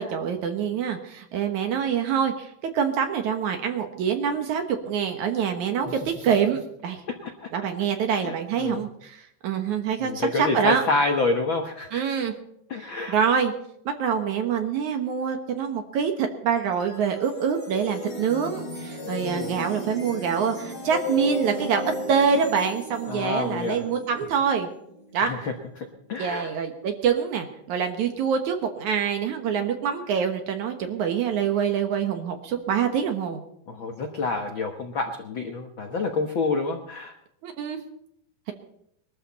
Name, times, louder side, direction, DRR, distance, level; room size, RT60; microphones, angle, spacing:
voice 1, 0.0-2.5 2.7-5.9 6.2-7.0 7.5-8.9 9.4-10.8 11.9-12.3 13.1-13.5 13.9-21.8 22.1-24.7 25.1-25.3 26.2-33.4 37.4-37.8, right 7 dB, 65° right, 5 dB, 2.4 m, -25 dB
voice 2, 5.8-6.4 7.1-7.5 8.1-8.9 10.0-12.0 12.7-13.2 19.2-19.6 23.1-23.9 25.2-26.5 33.7-37.1, left 3 dB, 75° left, 3 dB, 1.1 m, -28 dB
sound 1, 16.6-25.8, equal, 40° left, 7.1 m, -35 dB
21.5 x 13.5 x 4.2 m, 0.74 s
omnidirectional pair, 4.2 m